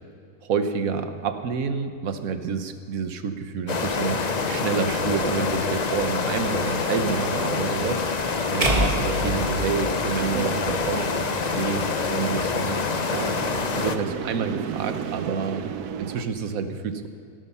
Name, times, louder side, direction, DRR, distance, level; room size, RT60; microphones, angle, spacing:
voice 1, 0.4-4.2 4.5-11.2 11.5-13.3 13.7-15.6 16.0-17.1, right 5 dB, 65° right, 8 dB, 1.4 m, -29 dB
sound 1, 3.7-14.0, left 4 dB, 40° left, 0.6 m, -26 dB
sound 2, 8.6-10.9, right 1 dB, 25° right, 1.7 m, -27 dB
sound 3, 8.6-16.3, right 8 dB, 90° right, 1.3 m, -35 dB
16.0 x 12.5 x 5.6 m, 2.6 s
omnidirectional pair, 1.6 m